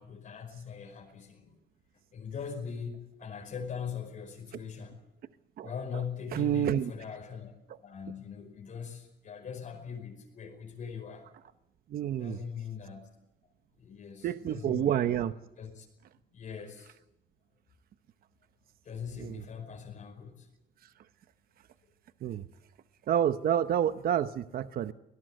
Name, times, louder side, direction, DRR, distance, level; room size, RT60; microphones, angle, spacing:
voice 1, 0.0-1.6 2.1-4.9 5.6-7.5 7.8-11.3 12.1-13.1 13.8-15.1 15.6-15.9 16.3-16.9 18.8-20.5, left 7 dB, 45° left, 1 dB, 5.2 m, -41 dB
voice 2, 5.6-6.0 6.3-6.9 7.7-7.8 11.9-12.4 14.2-15.3 19.2-19.4 22.2-22.4 23.1-24.9, right 10 dB, 60° right, 11 dB, 0.9 m, -29 dB
25.5 x 18.0 x 8.0 m, 0.88 s
cardioid pair, 140°, 17 cm